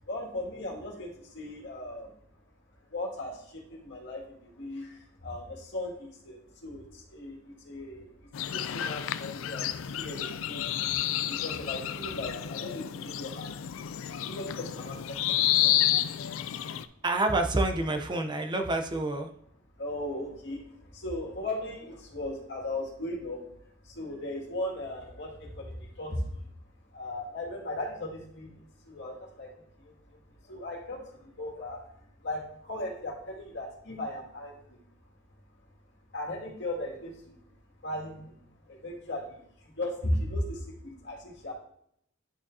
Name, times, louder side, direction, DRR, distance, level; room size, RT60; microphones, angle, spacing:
voice 1, 0.1-2.2 2.9-13.5 13.9-15.9 19.8-23.5 23.8-26.4 26.9-34.8 36.1-37.4 37.8-38.3 38.6-41.5, left 1 dB, 65° left, -2 dB, 2.2 m, -37 dB
sound 1, 8.3-16.8, left 12 dB, 90° left, 0.4 m, -30 dB
voice 2, 17.0-19.3, right 2 dB, 25° right, 5 dB, 0.7 m, -28 dB
10.5 x 5.1 x 2.8 m, 0.70 s
head